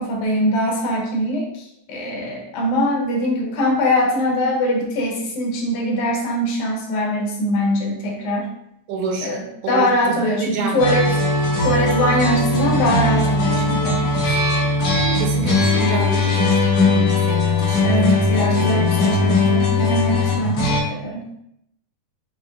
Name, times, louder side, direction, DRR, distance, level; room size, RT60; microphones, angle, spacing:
voice 1, 0.0-8.5 9.2-11.1 11.6-14.4 17.8-21.2, equal, 80° left, -1 dB, 2.3 m, -22 dB
voice 2, 8.9-9.4 9.6-10.9 15.1-19.5, right 2 dB, 80° right, 2 dB, 1.9 m, -28 dB
sound 1, 10.8-20.8, left 2 dB, 55° left, 2.2 m, -19 dB
5.7 x 2.2 x 3.6 m, 0.77 s
omnidirectional pair, 3.5 m